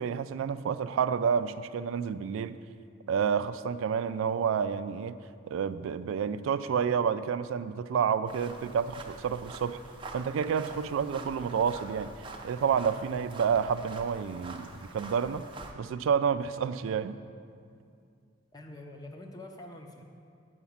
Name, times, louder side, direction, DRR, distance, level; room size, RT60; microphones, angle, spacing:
voice 1, 0.0-2.5 3.1-5.2 5.5-9.8 10.1-12.1 12.4-15.5 15.8-17.2, right 7 dB, 80° right, 13 dB, 0.3 m, -29 dB
sound 1, 8.3-15.7, right 3 dB, 25° right, 0.6 m, -46 dB
voice 2, 18.5-20.0, left 1 dB, 20° left, 2 dB, 0.7 m, -45 dB
8.0 x 5.0 x 7.1 m, 2.3 s
head